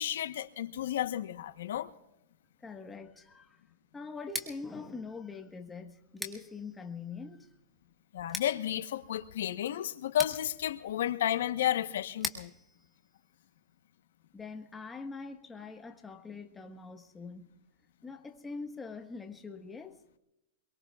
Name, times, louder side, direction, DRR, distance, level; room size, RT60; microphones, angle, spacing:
voice 1, 0.0-1.9 8.1-12.5, left 11 dB, 80° left, 1.0 m, -32 dB
voice 2, 2.6-3.6 3.9-7.6 14.3-17.5 18.0-20.0, left 4 dB, 10° left, 1.3 m, -43 dB
Scissors, 4.2-14.0, equal, 5° right, 1.9 m, -45 dB
25.0 x 23.5 x 2.4 m
supercardioid pair, 145°, 0 cm